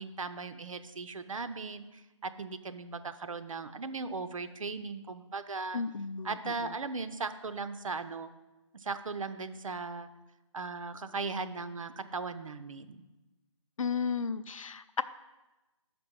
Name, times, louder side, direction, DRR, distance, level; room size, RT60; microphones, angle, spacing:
voice 1, 0.0-5.8 6.2-8.3 8.8-10.1 10.5-13.0, right 4 dB, 90° right, 10 dB, 0.7 m, -38 dB
voice 2, 5.7-6.7 13.8-15.0, left 5 dB, 90° left, 15 dB, 0.5 m, -34 dB
5.7 x 5.2 x 6.1 m, 1.1 s
hypercardioid pair, 165°, 17 cm